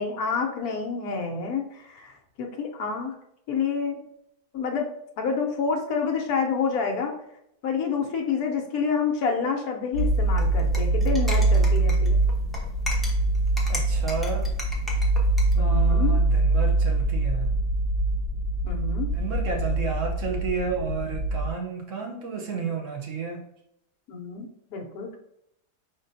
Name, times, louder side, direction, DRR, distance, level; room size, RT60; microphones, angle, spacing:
voice 1, 0.0-3.1 3.5-4.0 4.5-7.1 7.6-12.2 15.5-16.2 18.6-19.1 24.1-25.2, left 5 dB, 65° left, 2 dB, 1.2 m, -28 dB
sound 1, 9.9-21.5, right 2 dB, 90° right, 2.0 m, -23 dB
sound 2, 10.0-15.5, left 1 dB, ahead, 0.3 m, -38 dB
voice 2, 13.7-14.5 15.5-17.6 19.1-23.5, right 5 dB, 60° right, 1 dB, 0.9 m, -31 dB
5.1 x 3.9 x 2.6 m, 0.76 s
omnidirectional pair, 1.8 m